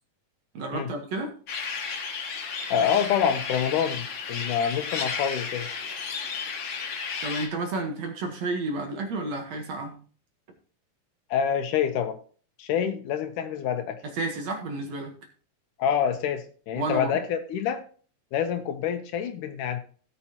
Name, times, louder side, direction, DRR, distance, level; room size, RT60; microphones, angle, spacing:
voice 1, 0.5-1.3 7.2-9.9 14.0-15.1 16.8-17.2, right 2 dB, 60° right, 4 dB, 2.1 m, -31 dB
sound 1, 1.5-7.5, left 5 dB, 50° left, 1.6 m, -33 dB
voice 2, 2.7-5.7 11.3-12.2 12.6-14.0 15.8-17.8 18.3-19.8, left 8 dB, 75° left, 8 dB, 2.2 m, -27 dB
17.0 x 6.9 x 2.9 m, 0.41 s
omnidirectional pair, 4.0 m